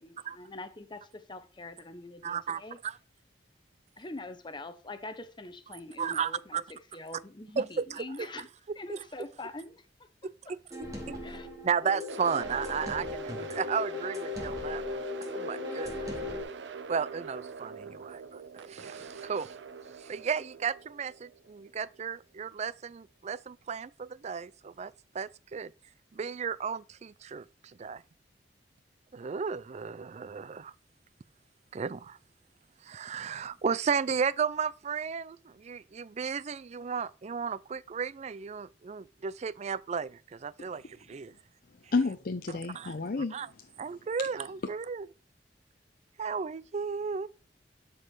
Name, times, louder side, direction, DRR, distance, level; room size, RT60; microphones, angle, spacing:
voice 1, 0.0-2.8 4.0-8.5 8.8-9.8 11.2-11.5, left 2 dB, 25° left, 1.0 m, -44 dB
voice 2, 2.2-3.0 6.0-6.6 7.6-8.3 8.9-9.0 10.2-10.6 11.1-11.2 11.6-15.0 15.3-16.1 16.9-19.6 20.0-25.7 26.1-28.0 29.1-30.7 31.7-32.2 32.8-41.3 42.5-42.9 43.3-43.5 43.8-45.1 46.2-47.3, right 6 dB, 40° right, 0.4 m, -34 dB
sound 1, 10.7-16.4, left 4 dB, 20° right, 2.4 m, -38 dB
sound 2, 12.1-22.1, right 5 dB, 85° right, 0.7 m, -43 dB
voice 3, 41.9-43.3, left 3 dB, 55° left, 0.6 m, -30 dB
12.0 x 4.7 x 4.8 m
head